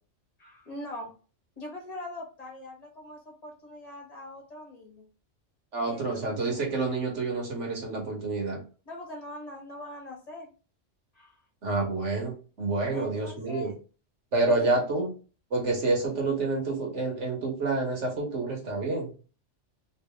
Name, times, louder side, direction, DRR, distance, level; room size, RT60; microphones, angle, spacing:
voice 1, 0.4-1.1 1.6-5.0 5.8-6.6 8.8-10.5 11.1-11.4 12.9-13.7 14.5-14.7, left 1 dB, 35° left, 0 dB, 1.4 m, -42 dB
voice 2, 5.7-8.6 11.6-13.7 14.3-15.1 15.5-19.1, right 3 dB, 70° right, 0 dB, 1.6 m, -28 dB
3.3 x 2.6 x 3.4 m, 0.37 s
omnidirectional pair, 1.3 m